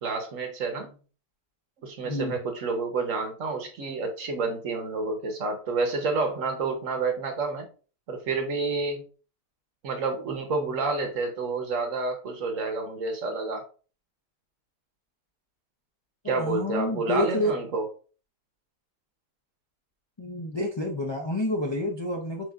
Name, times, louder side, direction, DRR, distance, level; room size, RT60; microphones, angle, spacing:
voice 1, 0.0-1.0 1.8-7.7 8.1-9.0 9.8-13.6 16.2-17.9, right 3 dB, 60° right, 4 dB, 1.2 m, -29 dB
voice 2, 2.0-2.3 16.2-17.6 20.2-22.5, left 1 dB, 45° left, -1 dB, 0.3 m, -29 dB
6.2 x 2.7 x 2.4 m, 0.37 s
omnidirectional pair, 1.6 m